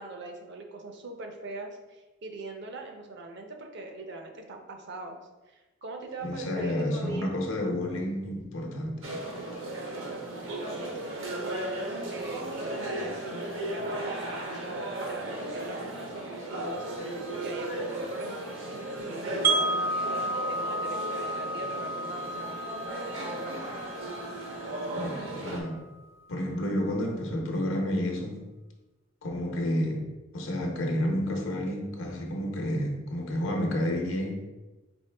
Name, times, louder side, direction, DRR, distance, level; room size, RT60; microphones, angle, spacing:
voice 1, 0.0-5.2 5.5-7.4 9.5-22.6 23.2-23.7, right 2 dB, 60° right, 3 dB, 0.6 m, -42 dB
voice 2, 6.2-9.0 24.9-25.8 26.3-28.4 29.2-30.0 30.3-34.4, left 1 dB, 85° left, 1 dB, 0.8 m, -30 dB
sound 1, 9.0-25.6, right 1 dB, 80° right, 1.0 m, -36 dB
Wind chime, 19.4-25.4, right 2 dB, 10° right, 0.4 m, -32 dB
4.4 x 3.1 x 3.4 m, 1.1 s
head